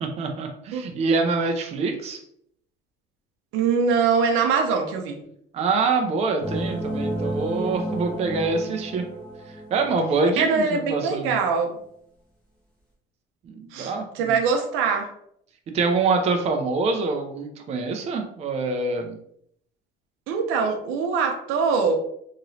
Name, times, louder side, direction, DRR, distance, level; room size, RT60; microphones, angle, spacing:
voice 1, 0.0-2.2 5.5-9.0 9.7-11.4 13.4-14.4 15.7-19.2, right 4 dB, 35° right, 4 dB, 0.4 m, -25 dB
voice 2, 3.5-5.2 10.4-11.7 13.7-15.1 20.3-22.0, right 5 dB, 90° right, 4 dB, 0.6 m, -23 dB
sound 1, 6.4-10.4, right 1 dB, 5° left, 1.1 m, -31 dB
3.0 x 2.8 x 2.6 m, 0.70 s
cardioid pair, 145°, 20 cm